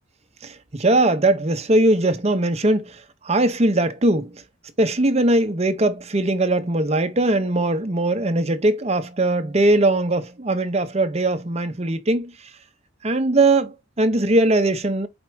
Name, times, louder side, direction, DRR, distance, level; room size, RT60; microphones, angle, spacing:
voice 1, 0.4-4.4 4.8-12.3 13.0-15.1, right 2 dB, 30° right, 0.7 m, -20 dB
4.8 x 4.3 x 4.6 m
head